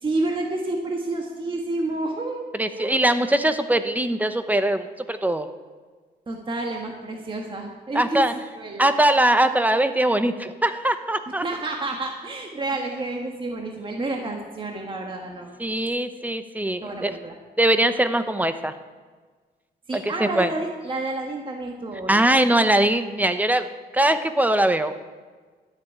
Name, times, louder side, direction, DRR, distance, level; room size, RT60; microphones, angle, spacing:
voice 1, 0.0-3.1 6.3-8.2 8.5-8.8 11.4-15.5 16.8-17.3 19.9-22.3, right 2 dB, 30° right, 1 dB, 1.5 m, -29 dB
voice 2, 2.5-5.5 7.9-8.3 8.8-11.4 15.6-17.2 17.6-18.7 19.9-20.5 22.1-23.7 23.9-24.9, right 1 dB, 10° right, 10 dB, 0.8 m, -21 dB
13.0 x 7.3 x 9.9 m, 1.4 s
cardioid pair, 120°, 18 cm